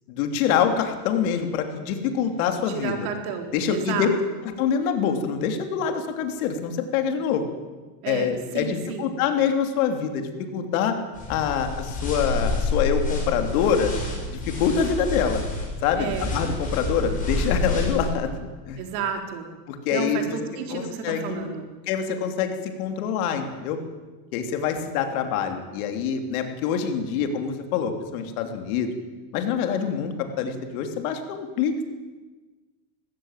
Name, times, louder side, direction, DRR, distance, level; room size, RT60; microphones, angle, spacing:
voice 1, 0.1-3.0 3.5-4.1 4.6-7.4 8.1-11.0 11.3-13.9 14.3-15.4 15.8-18.3 18.7-18.8 19.7-20.4 20.7-21.5 21.9-23.8 24.3-28.9 29.3-31.8, left 7 dB, 70° left, 5 dB, 3.3 m, -25 dB
voice 2, 2.7-4.1 8.0-9.2 15.9-16.3 18.8-19.5 19.9-21.7, right 6 dB, 70° right, 4 dB, 4.2 m, -31 dB
sound 1, 11.2-18.1, left 2 dB, 20° left, 7.9 m, -28 dB
20.0 x 15.5 x 9.2 m, 1.3 s
supercardioid pair, 140°, 43 cm